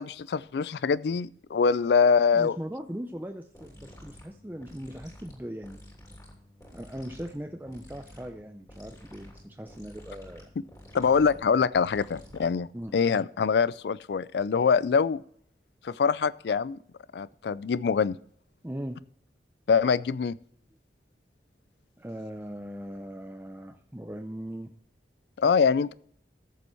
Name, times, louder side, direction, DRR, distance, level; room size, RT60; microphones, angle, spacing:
voice 1, 0.0-2.6 10.9-12.7 12.9-15.2 15.8-16.8 17.1-18.2 19.7-20.3 25.4-25.9, left 5 dB, 75° left, 19 dB, 0.4 m, -24 dB
voice 2, 2.3-5.8 6.7-10.5 12.7-13.0 18.6-19.0 22.0-24.7, equal, 10° right, 4 dB, 0.5 m, -39 dB
sound 1, 3.5-12.8, left 1 dB, 20° left, 3.0 m, -50 dB
14.5 x 7.0 x 4.4 m, 0.62 s
head